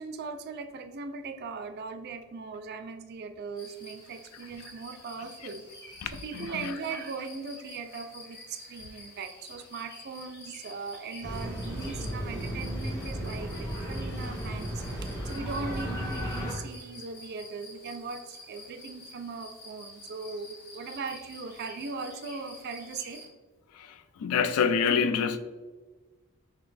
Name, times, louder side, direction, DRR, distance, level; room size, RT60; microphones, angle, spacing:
voice 1, 0.0-5.6 6.1-23.2, right 4 dB, 45° right, 0.3 m, -39 dB
sound 1, 3.6-23.3, left 2 dB, 50° left, 0.8 m, -49 dB
voice 2, 6.0-6.7 23.8-25.4, left 6 dB, 80° left, 0.4 m, -27 dB
sound 2, 11.2-16.5, equal, 15° left, 1.0 m, -34 dB
3.9 x 2.8 x 3.3 m
head